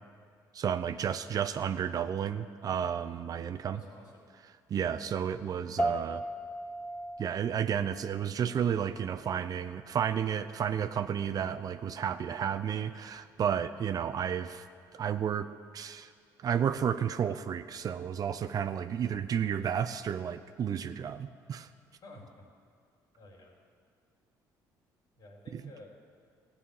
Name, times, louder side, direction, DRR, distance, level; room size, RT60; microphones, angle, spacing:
voice 1, 0.5-3.8 4.7-6.2 7.2-14.6 14.9-15.5 15.7-16.1 16.4-21.7 25.5-25.6, right 8 dB, 50° right, 10 dB, 0.6 m, -32 dB
voice 2, 3.7-4.2 22.0-22.5 23.1-23.6 25.2-26.0, left 2 dB, 60° left, -3 dB, 4.0 m, -52 dB
sound 1, 5.8-15.4, right 1 dB, 15° left, 1.0 m, -40 dB
16.0 x 5.6 x 8.6 m, 2.4 s
supercardioid pair, 75°, 8 cm